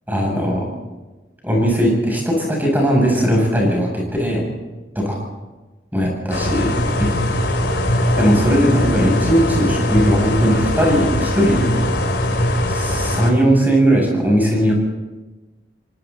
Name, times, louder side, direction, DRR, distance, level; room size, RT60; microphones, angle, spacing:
voice 1, 0.1-0.7 1.4-4.5 4.9-5.2 5.9-6.7 7.0-7.1 8.2-11.7 12.7-14.8, equal, 10° right, -1 dB, 7.8 m, -18 dB
sound 1, 6.3-13.3, left 1 dB, 90° left, 3.1 m, -20 dB
25.5 x 25.0 x 4.3 m, 1.2 s
head